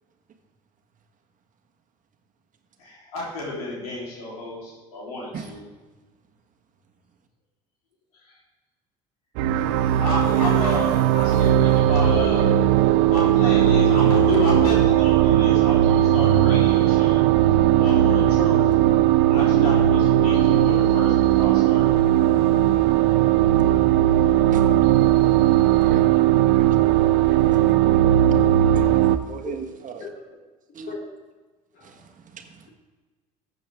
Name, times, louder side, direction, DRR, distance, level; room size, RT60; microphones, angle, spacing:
voice 1, 2.8-5.6 8.2-8.3 10.0-12.6 13.1-17.2 17.8-18.7 19.3-22.0, left 2 dB, 85° left, -4 dB, 3.3 m, -31 dB
sound 1, 9.4-29.2, right 12 dB, 75° right, 0.6 m, -18 dB
voice 2, 26.4-26.9 27.4-27.7 28.2-28.3 28.7-30.0 30.7-30.9 31.8-32.7, right 6 dB, 45° right, 5 dB, 1.4 m, -39 dB
voice 3, 29.4-30.4 30.9-31.1 31.7-32.0, left 3 dB, 55° left, 0 dB, 2.9 m, -39 dB
14.0 x 7.8 x 3.5 m, 1.3 s
hypercardioid pair, 65°, 19 cm